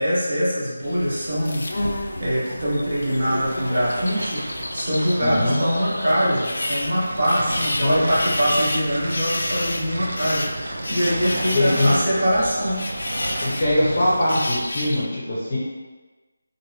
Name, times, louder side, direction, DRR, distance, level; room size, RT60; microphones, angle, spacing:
voice 1, 0.0-12.9, equal, 35° right, -7 dB, 0.9 m, -23 dB
sound 1, 0.8-15.0, left 1 dB, 65° left, 0.4 m, -31 dB
sound 2, 3.2-14.3, right 1 dB, 70° right, 0.4 m, -33 dB
voice 2, 5.2-5.6 7.8-8.0 11.5-11.9 13.4-15.6, left 1 dB, 25° left, -8 dB, 0.7 m, -21 dB
3.0 x 2.6 x 3.1 m, 1.3 s
figure-of-eight pair, 180°, 0 cm